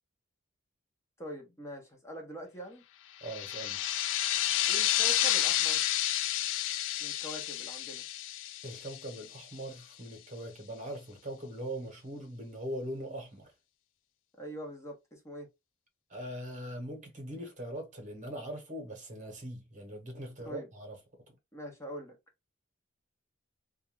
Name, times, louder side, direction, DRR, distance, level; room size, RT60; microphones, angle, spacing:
voice 1, 1.2-2.8 4.7-5.8 7.0-8.0 14.4-15.5 20.4-20.7 21.5-22.2, equal, 15° left, 0.7 m, -43 dB
sound 1, 3.2-9.5, left 13 dB, 65° left, 0.3 m, -30 dB
voice 2, 3.2-3.8 8.6-13.5 16.1-20.9, right 1 dB, 40° right, 1.0 m, -41 dB
2.5 x 2.3 x 3.0 m
head